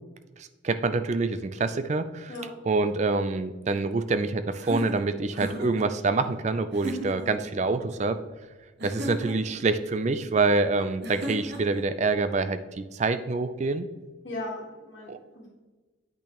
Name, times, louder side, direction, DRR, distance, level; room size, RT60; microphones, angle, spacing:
voice 1, 0.4-2.3 2.7-8.2 8.8-13.9 15.1-15.2, right 3 dB, 35° right, 11 dB, 0.4 m, -26 dB
sound 1, 4.6-5.9 6.7-7.3 8.8-9.6 11.0-11.8, right 1 dB, 55° right, 1.2 m, -35 dB
voice 2, 14.2-15.5, left 2 dB, 60° left, -6 dB, 1.6 m, -37 dB
8.4 x 5.8 x 3.0 m, 1.2 s
head